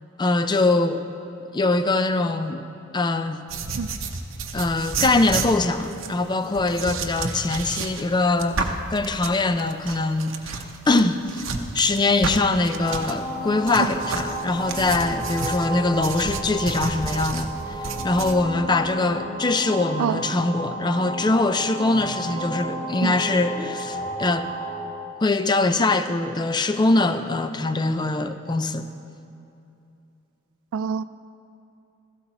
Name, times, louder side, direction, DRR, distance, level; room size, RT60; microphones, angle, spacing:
voice 1, 0.2-1.0 1.5-2.7 2.9-3.4 4.5-11.5 11.7-17.5 17.8-24.5 25.2-28.9, left 2 dB, 20° left, 0.4 m, -23 dB
sound 1, 3.5-13.2 13.7-18.4, right 4 dB, 65° right, 0.8 m, -31 dB
sound 2, 12.8-24.9, right 1 dB, 55° left, 1.8 m, -32 dB
voice 2, 30.7-31.0, right 7 dB, 90° right, 0.3 m, -25 dB
16.5 x 15.0 x 3.0 m
head